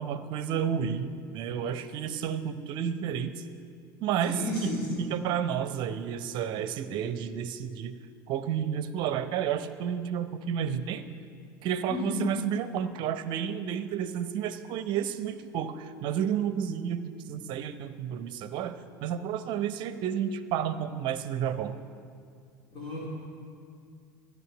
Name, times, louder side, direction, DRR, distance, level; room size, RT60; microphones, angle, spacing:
voice 1, 0.0-3.4 4.0-4.7 5.0-7.9 8.3-11.1 11.6-21.8, right 8 dB, 45° right, 12 dB, 0.8 m, -31 dB
voice 2, 4.2-5.0 11.9-12.2 22.7-23.0, equal, 40° left, -5 dB, 3.3 m, -32 dB
14.0 x 11.0 x 5.9 m, 2.2 s
figure-of-eight pair, 75°, 11 cm